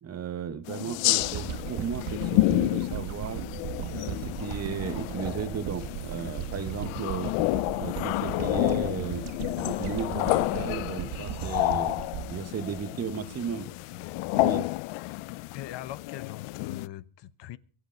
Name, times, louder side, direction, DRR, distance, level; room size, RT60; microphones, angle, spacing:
voice 1, 0.0-3.4 3.9-7.4 7.8-9.3 9.6-12.0 12.3-13.7 14.3-14.7, right 7 dB, 30° right, 1.1 m, -35 dB
sound 1, 0.7-16.9, left 21 dB, 85° left, 0.6 m, -30 dB
sound 2, 1.2-13.5 14.0-14.1, right 10 dB, 80° right, 1.7 m, -37 dB
voice 2, 12.9-14.4 15.5-17.6, left 13 dB, 60° left, 1.1 m, -43 dB
23.5 x 8.1 x 5.0 m
cardioid pair, 120°, 48 cm